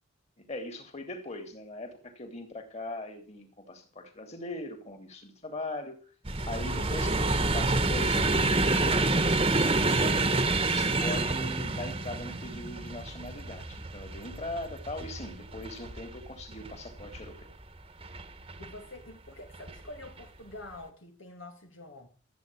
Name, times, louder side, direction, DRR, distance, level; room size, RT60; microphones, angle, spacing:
voice 1, 0.4-6.1 6.5-10.3 10.7-17.5, left 2 dB, 30° left, 3.8 m, -40 dB
sound 1, 6.2-17.4 18.0-18.7 19.5-19.7 20.0-20.2, right 2 dB, 25° right, 1.4 m, -28 dB
voice 2, 18.6-22.1, left 2 dB, 65° left, 2.7 m, -46 dB
15.5 x 9.1 x 8.9 m
head